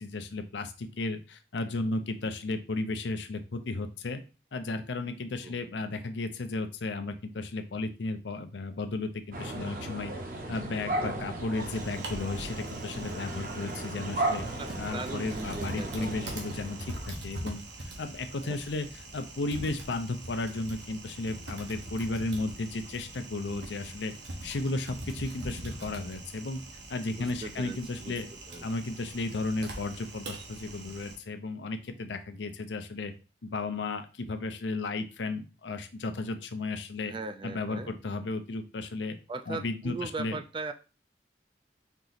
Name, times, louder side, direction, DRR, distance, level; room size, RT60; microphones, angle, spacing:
voice 1, 0.0-4.2 4.5-10.1 10.5-14.4 14.8-24.1 24.4-26.6 26.9-28.3 28.6-33.1 33.4-37.1 37.4-39.2 39.5-40.4, left 3 dB, 85° left, 8 dB, 0.6 m, -34 dB
sound 1, 9.3-17.1, right 2 dB, 50° right, 0.9 m, -36 dB
Typing, 11.5-31.1, right 1 dB, 80° right, 1.3 m, -43 dB
voice 2, 14.6-16.4 18.4-18.6 27.2-28.2 28.5-28.6 37.0-37.9 39.3-40.7, right 3 dB, 25° right, 9 dB, 0.3 m, -39 dB
4.6 x 2.9 x 4.0 m, 0.33 s
head